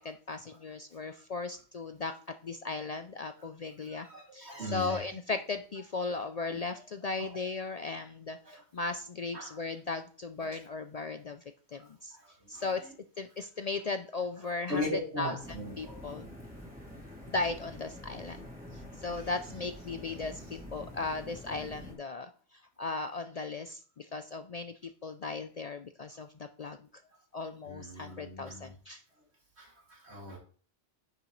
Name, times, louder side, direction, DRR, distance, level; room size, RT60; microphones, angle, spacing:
voice 1, 0.0-2.1 2.4-4.1 4.3-11.4 11.7-12.2 12.5-12.8 13.2-15.3 15.8-16.3 17.3-18.5 18.7-22.3 22.8-24.7 25.0-26.3 26.6-26.8 27.3-29.0, left 3 dB, 50° left, 8 dB, 0.5 m, -37 dB
voice 2, 3.8-5.1 6.5-6.6 7.2-7.4 8.4-8.6 9.3-9.8 10.4-10.6 11.7-12.9 14.4-16.2 19.1-19.6 27.6-28.7 29.6-30.4, left 1 dB, 75° right, 0 dB, 2.8 m, -40 dB
sound 1, 15.4-21.9, equal, 10° right, 3.2 m, -47 dB
9.6 x 6.7 x 3.1 m, 0.42 s
omnidirectional pair, 1.1 m